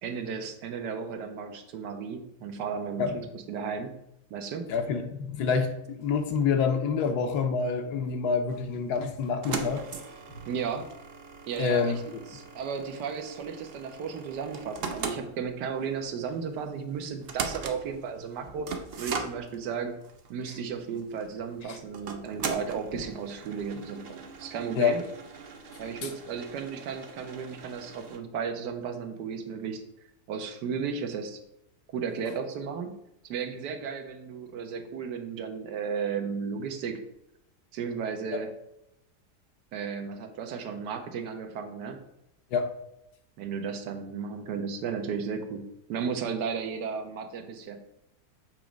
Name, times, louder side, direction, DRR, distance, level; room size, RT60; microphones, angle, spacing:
voice 1, 0.0-3.1 3.5-4.0 4.3-4.7 10.5-10.9 11.5-18.7 19.0-19.9 20.3-25.0 25.8-29.8 30.3-31.4 31.9-32.9 33.2-37.0 37.7-38.5 39.7-42.0 43.4-47.8, right 6 dB, 85° right, 6 dB, 1.3 m, -34 dB
voice 2, 4.7-9.8 11.6-12.0 21.7-21.8 24.8-25.0 42.5-42.7, left 6 dB, 75° left, 6 dB, 1.2 m, -27 dB
sound 1, 8.5-28.2, right 5 dB, 60° right, 0.6 m, -40 dB
7.2 x 3.0 x 5.0 m, 0.83 s
omnidirectional pair, 1.8 m